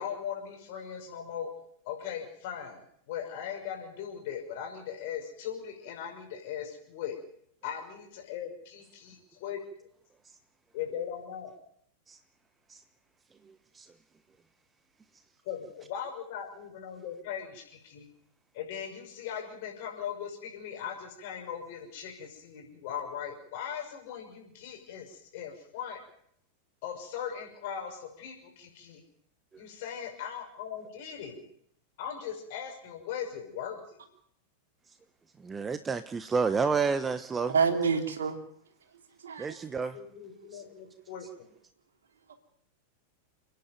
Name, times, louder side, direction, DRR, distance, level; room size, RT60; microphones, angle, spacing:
voice 1, 0.0-1.5 1.8-2.8 3.1-7.2 7.6-9.9 10.7-11.6 15.5-18.1 18.5-26.0 26.8-29.0 29.6-31.4 32.0-34.0 39.9-41.5, left 8 dB, 50° left, 3 dB, 6.0 m, -39 dB
voice 2, 35.4-37.5 39.4-40.0 40.5-40.6, right 5 dB, 15° right, 11 dB, 1.0 m, -30 dB
voice 3, 37.5-38.4 39.2-39.5 42.3-42.4, right 5 dB, 65° right, 5 dB, 3.0 m, -27 dB
30.0 x 10.5 x 9.3 m, 0.69 s
figure-of-eight pair, 90°, 0 cm